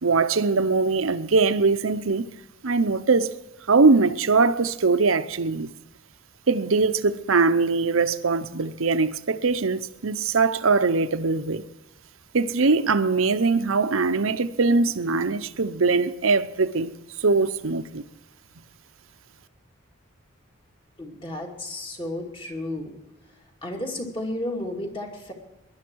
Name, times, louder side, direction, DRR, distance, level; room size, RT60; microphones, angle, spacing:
voice 1, 0.0-2.2 2.6-3.3 3.7-5.7 6.5-11.6 12.3-16.9 17.2-18.0, right 4 dB, 80° right, 0.8 m, -21 dB
voice 2, 21.0-23.0 23.6-25.3, left 1 dB, 25° left, 2.5 m, -32 dB
20.5 x 11.5 x 4.7 m
head